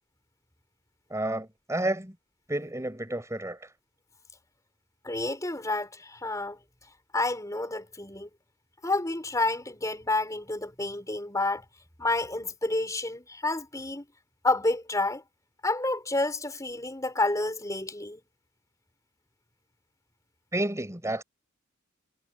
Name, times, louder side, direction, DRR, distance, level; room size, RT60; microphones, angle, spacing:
voice 1, 1.1-2.1 2.5-3.7 20.5-21.2, right 1 dB, 15° right, 6.3 m, -31 dB
voice 2, 5.0-6.6 7.1-8.3 8.8-11.6 12.0-14.0 14.4-15.2 15.6-18.2, left 2 dB, 15° left, 5.0 m, -29 dB
head